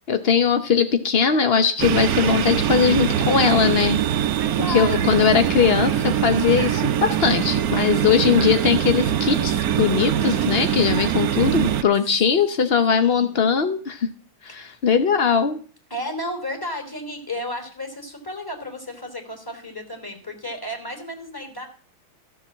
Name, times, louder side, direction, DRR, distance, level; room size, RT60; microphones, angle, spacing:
voice 1, 0.1-4.0 4.6-14.1 14.4-15.6, left 6 dB, 70° left, 9 dB, 0.5 m, -20 dB
sound 1, 1.8-11.8, right 10 dB, 60° right, 1.0 m, -23 dB
voice 2, 4.4-5.2 7.8-8.4 12.9-13.4 14.5-14.6 15.9-21.7, left 1 dB, 10° left, 4 dB, 3.1 m, -33 dB
14.5 x 7.1 x 7.2 m, 0.40 s
omnidirectional pair, 2.2 m